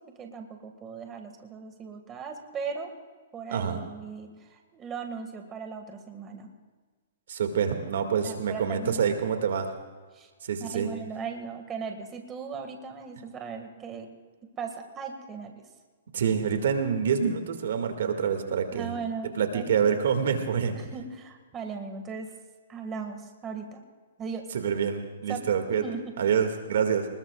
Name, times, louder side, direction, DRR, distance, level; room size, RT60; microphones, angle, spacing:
voice 1, 0.0-2.9 3.3-6.5 8.2-9.4 10.1-10.3 10.6-14.1 14.6-15.7 18.7-19.8 20.7-22.3 22.7-23.8 24.2-24.4 25.3-26.1, right 5 dB, 20° right, 4 dB, 1.9 m, -38 dB
voice 2, 3.5-3.8 7.3-9.7 10.4-10.9 16.1-18.9 19.4-20.7 24.5-25.8 26.2-27.1, right 7 dB, 70° right, 5 dB, 2.1 m, -26 dB
25.0 x 20.5 x 2.4 m, 1.4 s
hypercardioid pair, 150°, 0 cm